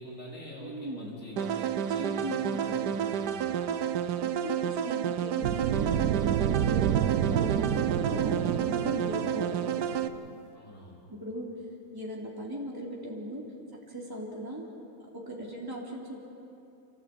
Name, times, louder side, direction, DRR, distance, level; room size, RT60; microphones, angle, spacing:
voice 1, 0.0-3.7 8.0-8.4 10.5-11.0, equal, 50° left, -4 dB, 5.2 m, -45 dB
voice 2, 0.6-1.1 2.0-3.1 4.2-6.9 7.3-9.8 11.1-11.5 11.9-13.4 13.7-14.6 15.1-16.2, right 1 dB, 15° right, -4 dB, 3.2 m, -38 dB
sound 1, 1.4-10.1, right 9 dB, 85° right, 1.5 m, -30 dB
sound 2, 5.4-10.4, right 10 dB, 65° right, 1.1 m, -29 dB
27.0 x 16.5 x 8.5 m, 2.7 s
omnidirectional pair, 1.7 m